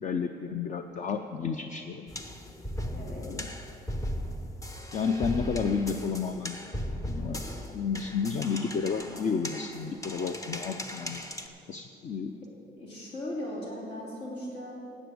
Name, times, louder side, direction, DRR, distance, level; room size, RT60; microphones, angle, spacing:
voice 1, 0.0-2.1 3.2-3.5 4.9-6.6 7.1-7.4 7.7-11.2 11.7-12.3, left 5 dB, 40° left, 7 dB, 0.6 m, -31 dB
sound 1, 2.1-11.5, equal, 15° left, 0.9 m, -37 dB
voice 2, 2.9-3.3 12.7-14.8, left 1 dB, 65° left, -4 dB, 3.1 m, -38 dB
12.0 x 8.1 x 7.7 m, 2.8 s
cardioid pair, 125°, 19 cm